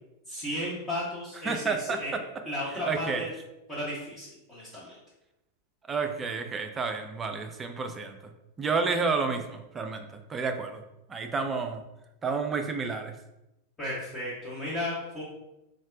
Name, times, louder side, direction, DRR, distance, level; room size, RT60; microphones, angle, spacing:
voice 1, 0.3-2.1 2.4-3.3 3.7-4.9 13.8-15.2, left 1 dB, 20° left, -8 dB, 0.8 m, -34 dB
voice 2, 1.4-2.2 2.9-3.3 5.9-8.2 8.6-10.8 11.1-11.8 12.2-13.1, right 4 dB, 20° right, 6 dB, 0.3 m, -30 dB
4.0 x 2.0 x 2.4 m, 0.91 s
figure-of-eight pair, 90°, 0 cm